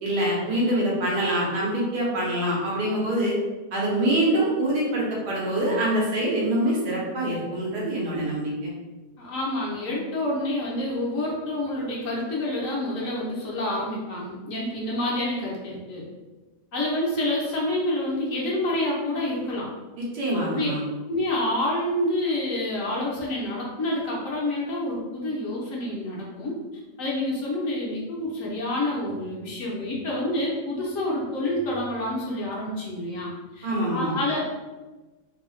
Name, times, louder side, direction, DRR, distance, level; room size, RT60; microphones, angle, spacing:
voice 1, 0.0-3.3 3.7-8.7 20.0-20.8 33.6-34.1, right 1 dB, 85° right, -4 dB, 1.6 m, -25 dB
voice 2, 9.2-16.1 16.7-19.7 20.3-20.7 21.1-26.5 27.0-34.4, left 1 dB, 60° left, -4 dB, 1.1 m, -28 dB
3.6 x 2.3 x 3.1 m, 1.2 s
omnidirectional pair, 1.7 m